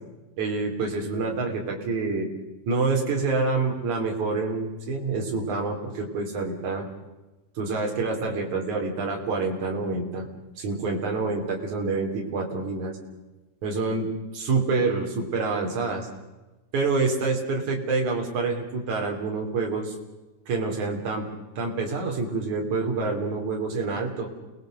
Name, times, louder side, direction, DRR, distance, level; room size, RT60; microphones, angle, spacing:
voice 1, 0.4-2.3 2.7-6.9 7.6-10.3 10.6-13.0 13.6-14.1 14.3-16.1 16.7-19.9 20.5-21.3 21.6-24.3, right 3 dB, 65° right, 1 dB, 4.7 m, -27 dB
28.5 x 20.0 x 6.6 m, 1.1 s
omnidirectional pair, 3.7 m